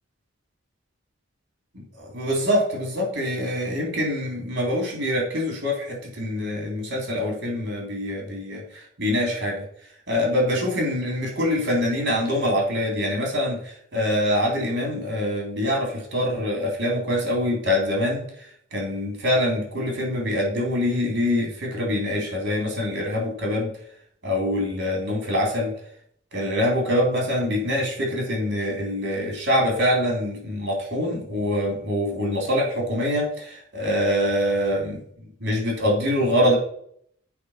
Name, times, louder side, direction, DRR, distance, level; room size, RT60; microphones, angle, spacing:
voice 1, 2.0-9.6 10.1-18.2 18.7-23.7 24.2-25.7 26.3-35.0 35.4-36.6, left 1 dB, 65° right, 0 dB, 3.3 m, -24 dB
8.4 x 4.9 x 5.8 m, 0.65 s
head